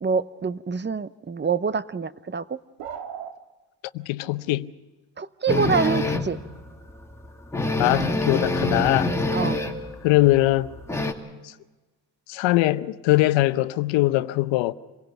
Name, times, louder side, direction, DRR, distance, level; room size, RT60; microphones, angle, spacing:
voice 1, 0.0-2.6 5.2-6.4 9.3-9.6, right 5 dB, 25° right, 0.8 m, -26 dB
sound 1, 2.8-3.4, right 8 dB, 90° right, 1.7 m, -35 dB
voice 2, 3.9-4.7 7.8-9.1 10.0-10.7 11.4-11.5 12.3-14.7, left 17 dB, 90° left, 0.9 m, -21 dB
sound 2, 5.5-6.4 6.9-7.0 7.2-7.3 7.5-9.9 10.2-11.1, left 2 dB, 5° left, 2.6 m, -25 dB
27.5 x 17.0 x 5.9 m
supercardioid pair, 75°, 44 cm